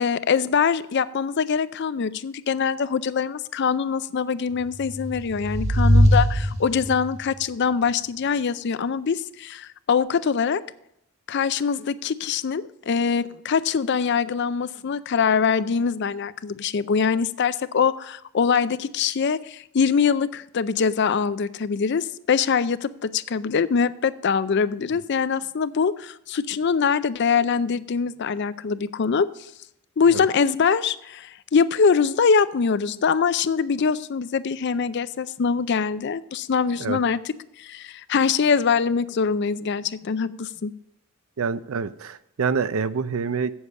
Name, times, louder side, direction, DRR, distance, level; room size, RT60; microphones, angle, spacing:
voice 1, 0.0-10.6 11.3-29.3 30.0-37.3 37.6-40.7, left 6 dB, 50° left, 15 dB, 0.4 m, -23 dB
sound 1, 4.8-7.2, equal, 30° right, 1.6 m, -20 dB
voice 2, 41.4-43.5, right 5 dB, 70° right, 15 dB, 0.5 m, -26 dB
8.3 x 7.1 x 6.2 m, 0.79 s
head